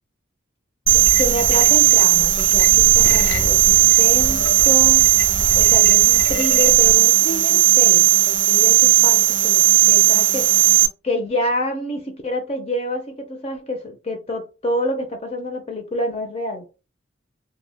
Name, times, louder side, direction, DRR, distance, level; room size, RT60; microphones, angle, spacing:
sound 1, 0.9-6.9, left 1 dB, 80° left, 0.6 m, -28 dB
voice 1, 0.9-5.1 5.5-10.6 11.0-16.6, left 1 dB, 30° left, 0.4 m, -27 dB
sound 2, 0.9-10.9, right 13 dB, 65° right, 0.4 m, -15 dB
2.1 x 2.1 x 3.2 m
head